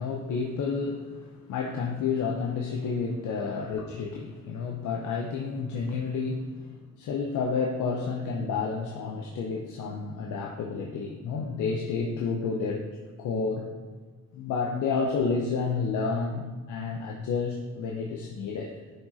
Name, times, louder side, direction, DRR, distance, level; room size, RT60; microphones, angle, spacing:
voice 1, 0.0-12.9 13.2-13.7 14.3-18.8, left 5 dB, 80° left, 1 dB, 1.0 m, -30 dB
11.5 x 5.0 x 4.2 m, 1.5 s
cardioid pair, 90°, 30 cm